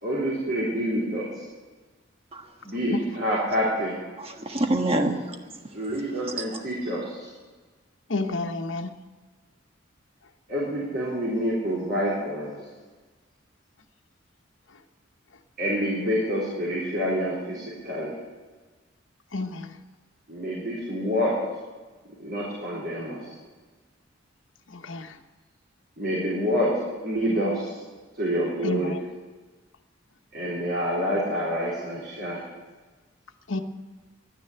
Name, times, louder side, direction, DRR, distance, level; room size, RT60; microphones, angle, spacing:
voice 1, 0.0-1.3 2.6-4.0 5.7-7.3 10.5-12.5 15.6-18.1 20.3-21.3 22.2-23.2 26.0-26.7 27.0-27.8 28.2-29.0 30.3-32.5, equal, 55° right, -7 dB, 4.1 m, -27 dB
voice 2, 4.2-5.4 5.8-6.7, right 1 dB, 30° right, 4 dB, 1.4 m, -28 dB
voice 3, 8.1-8.9 19.3-19.6 24.9-25.0 28.6-28.8 33.5-33.6, left 3 dB, 75° left, 5 dB, 1.0 m, -29 dB
12.0 x 10.0 x 9.9 m, 1.3 s
head